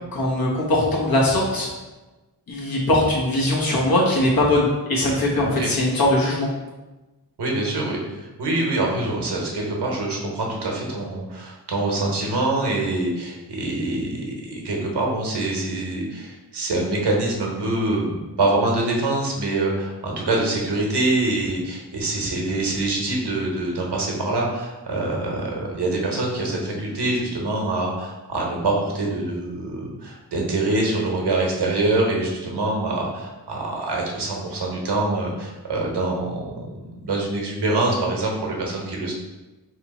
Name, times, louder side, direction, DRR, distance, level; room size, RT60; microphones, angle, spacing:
voice 1, 0.1-1.7 2.5-6.5, left 1 dB, 60° left, -4 dB, 1.2 m, -20 dB
voice 2, 7.4-39.1, right 2 dB, 85° right, -1 dB, 1.0 m, -25 dB
3.2 x 3.0 x 4.1 m, 1.1 s
wide cardioid pair, 120°, 40 cm